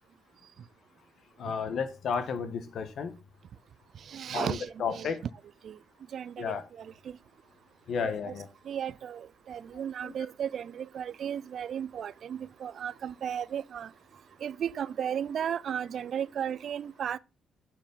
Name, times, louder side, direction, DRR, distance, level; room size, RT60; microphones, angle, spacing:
voice 1, 1.4-3.1 4.3-5.2 6.4-6.6 7.9-8.5 10.0-10.1, left 6 dB, 65° left, 1.3 m, -32 dB
voice 2, 4.1-5.1 5.6-5.8 6.1-7.2 8.0-8.4 8.7-13.9 14.4-17.2, right 8 dB, 60° right, 0.4 m, -35 dB
8.9 x 4.6 x 5.6 m
cardioid pair, 90°, 0 cm